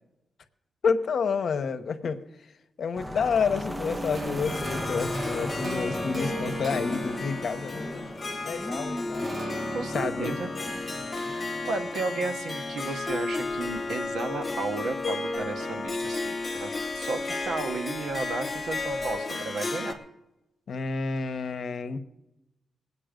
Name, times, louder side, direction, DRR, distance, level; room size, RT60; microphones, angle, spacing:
voice 1, 0.8-2.2 2.8-8.1 8.4-9.3 9.9-10.3 20.7-22.0, left 5 dB, 55° left, 8 dB, 0.9 m, -29 dB
sound 1, 2.9-19.2, equal, 5° right, 0.5 m, -39 dB
sound 2, 4.1-8.7 9.1-12.2, right 1 dB, 30° right, 1.1 m, -39 dB
Harp, 4.4-19.9, left 3 dB, 20° left, 1.5 m, -33 dB
voice 2, 9.7-10.5 11.2-20.0, right 3 dB, 75° right, 7 dB, 1.0 m, -34 dB
20.5 x 8.7 x 5.1 m, 0.93 s
wide cardioid pair, 175°, 0 cm